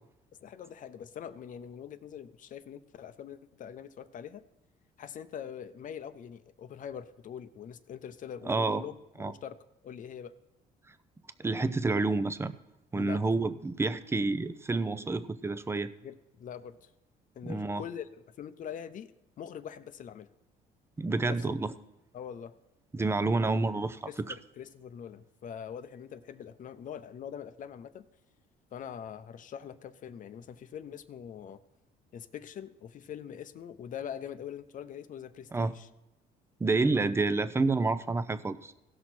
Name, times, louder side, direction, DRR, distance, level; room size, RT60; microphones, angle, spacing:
voice 1, 0.4-4.4 5.0-9.0 9.2-9.6 9.8-10.4 12.9-13.2 16.0-16.9 17.3-19.1 19.4-20.3 21.3-21.5 22.1-22.6 24.1-28.0 28.7-31.6 32.1-35.9, left 8 dB, 50° left, 12 dB, 0.8 m, -43 dB
voice 2, 8.5-8.8 9.2-9.3 11.4-12.5 12.9-15.9 17.4-17.8 21.0-21.7 22.9-24.1 35.5-35.7 36.6-38.7, right 3 dB, 15° right, 13 dB, 0.6 m, -29 dB
17.0 x 6.3 x 4.3 m, 0.95 s
cardioid pair, 110°, 17 cm